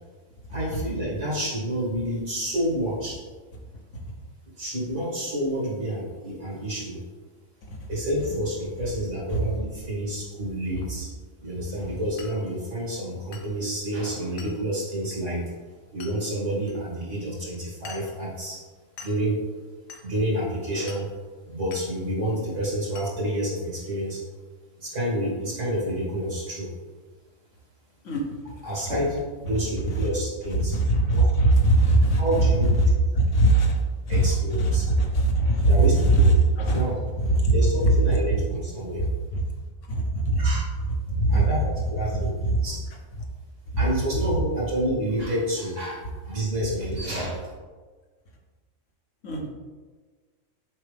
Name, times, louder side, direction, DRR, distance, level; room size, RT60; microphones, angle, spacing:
voice 1, 0.5-3.2 4.6-7.0 7.9-11.1 11.4-15.4 15.9-18.6 19.0-19.4 20.0-21.1 21.5-24.2 24.8-26.7 28.6-30.8 31.1-31.2 32.2-32.7 34.1-34.9 35.7-36.4 36.7-37.0 37.5-39.0 40.4-40.7 41.3-42.9 43.8-47.5, right 1 dB, 65° right, -5 dB, 2.6 m, -29 dB
Glass, 12.2-12.4 13.3-13.6 14.4-14.6 16.0-16.2 16.7-16.8 17.9-18.2 19.0-19.2 19.9-20.1 20.9-21.1 21.7-21.9 23.0-23.1, left 5 dB, 85° left, 1.2 m, -44 dB
voice 2, 28.0-28.4 28.9-29.0 30.7-32.2 33.1-33.8 34.1-34.3 34.6-35.8 36.0-36.2 36.6-36.8 37.2-37.5 38.3-38.4 39.3-39.4 39.9-40.5 41.1-41.4 42.5-42.6 49.2-49.5, right 2 dB, 70° left, 1 dB, 1.3 m, -21 dB
7.4 x 4.6 x 3.4 m, 1.4 s
omnidirectional pair, 1.4 m